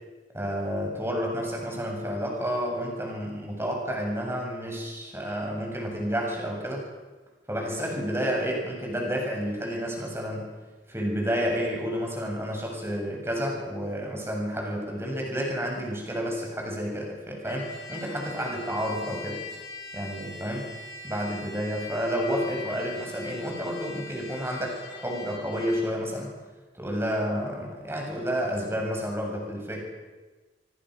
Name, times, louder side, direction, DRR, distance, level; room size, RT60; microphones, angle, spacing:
voice 1, 0.3-6.8 7.5-10.5 10.9-19.4 19.9-20.7 21.0-26.3 26.7-29.8, equal, 15° right, 0 dB, 7.3 m, -30 dB
Trumpet, 17.4-26.0, left 3 dB, 70° left, 7.4 m, -42 dB
25.5 x 24.5 x 6.5 m, 1.3 s
head